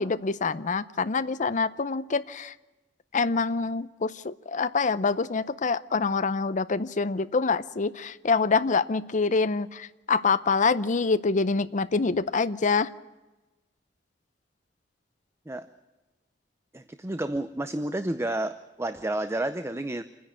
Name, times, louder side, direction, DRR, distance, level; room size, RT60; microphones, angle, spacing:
voice 1, 0.0-2.5 3.1-12.9, left 4 dB, 45° left, 14 dB, 0.6 m, -26 dB
voice 2, 16.7-20.0, right 1 dB, 15° right, 10 dB, 0.6 m, -30 dB
27.5 x 10.5 x 10.0 m, 1.1 s
head